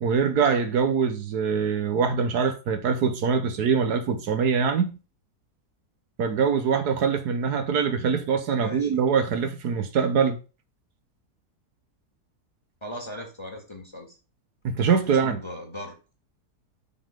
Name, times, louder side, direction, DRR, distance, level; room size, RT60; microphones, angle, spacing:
voice 1, 0.0-4.9 6.2-10.4 14.6-15.4, right 6 dB, 80° right, 1.6 m, -23 dB
voice 2, 8.5-9.0 12.8-14.2 15.2-16.0, left 1 dB, 15° left, 1.8 m, -38 dB
6.4 x 5.6 x 5.1 m
omnidirectional pair, 1.7 m